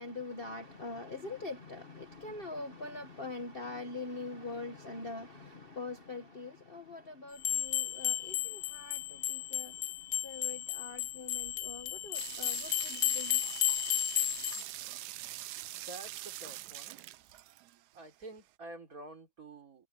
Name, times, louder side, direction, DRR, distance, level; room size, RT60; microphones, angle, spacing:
voice 1, 0.0-13.4, left 3 dB, 35° left, 1.2 m, -43 dB
sound 1, 7.4-14.6, left 13 dB, 65° left, 1.1 m, -33 dB
sound 2, 12.1-18.0, right 15 dB, 75° right, 0.9 m, -44 dB
voice 2, 15.6-17.0 17.9-19.9, right 2 dB, 40° right, 3.7 m, -49 dB
omnidirectional pair, 2.2 m